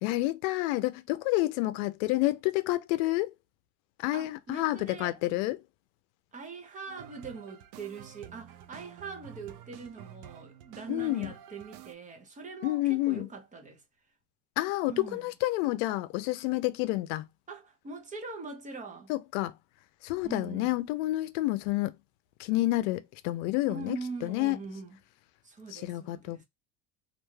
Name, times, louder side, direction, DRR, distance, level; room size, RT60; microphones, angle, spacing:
voice 1, 0.0-3.3 4.0-5.6 10.9-11.3 12.6-13.3 14.6-17.2 19.1-19.5 20.0-22.0 22.4-24.0 24.2-24.6 25.7-26.5, left 18 dB, 90° left, 0.5 m, -29 dB
voice 2, 4.1-5.2 6.3-13.8 14.9-15.2 17.5-19.1 20.2-20.7 23.7-25.0 25.4-26.5, right 4 dB, 20° right, 0.6 m, -42 dB
sound 1, 6.9-11.9, right 11 dB, 65° right, 0.5 m, -49 dB
2.5 x 2.3 x 3.0 m
cardioid pair, 135°, 35 cm